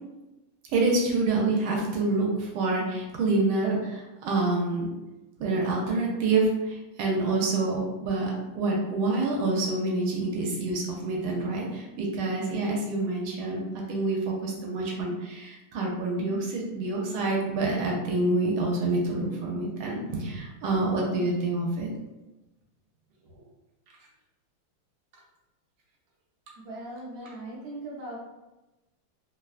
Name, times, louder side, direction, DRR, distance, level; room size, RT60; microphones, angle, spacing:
voice 1, 0.7-4.9 5.4-13.6 13.9-21.9, right 2 dB, 75° right, -2 dB, 1.4 m, -27 dB
voice 2, 26.6-28.2, right 1 dB, 60° right, -5 dB, 1.0 m, -39 dB
3.5 x 2.2 x 2.4 m, 1.0 s
omnidirectional pair, 2.4 m